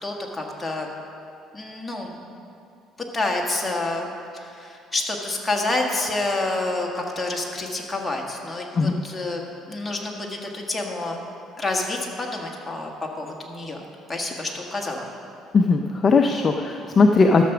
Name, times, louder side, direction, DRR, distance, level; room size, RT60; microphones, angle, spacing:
voice 1, 0.0-0.9 1.5-2.2 3.1-9.4 9.7-11.2 11.6-12.9 13.2-13.8 14.1-15.0, left 2 dB, 15° left, 0 dB, 1.6 m, -28 dB
voice 2, 15.5-17.5, left 4 dB, 35° left, 4 dB, 0.5 m, -18 dB
12.5 x 6.9 x 5.9 m, 2.6 s
cardioid pair, 115°, 0 cm